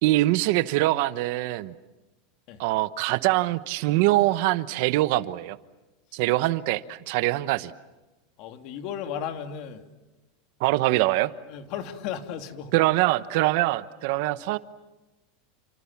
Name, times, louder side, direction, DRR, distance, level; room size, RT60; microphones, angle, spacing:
voice 1, 0.0-1.7 2.6-5.6 6.1-7.7 10.6-11.3 12.7-14.6, right 17 dB, 60° right, 14 dB, 1.0 m, -23 dB
voice 2, 8.4-9.9 11.5-12.7 13.4-13.5, left 8 dB, 50° left, 6 dB, 2.7 m, -35 dB
30.0 x 27.0 x 7.3 m, 1.1 s
supercardioid pair, 145°, 0 cm